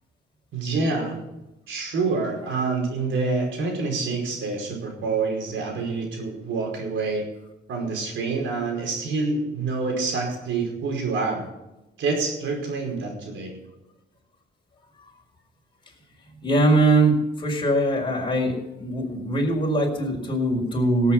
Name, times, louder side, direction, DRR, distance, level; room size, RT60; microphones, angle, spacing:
voice 1, 0.5-1.1 1.7-7.3 7.7-11.5 12.0-13.6, right 4 dB, 75° right, 1 dB, 5.2 m, -27 dB
voice 2, 16.4-21.1, right 2 dB, 25° left, 0 dB, 4.8 m, -22 dB
17.5 x 8.2 x 6.3 m, 0.95 s
cardioid pair, 90°, 20 cm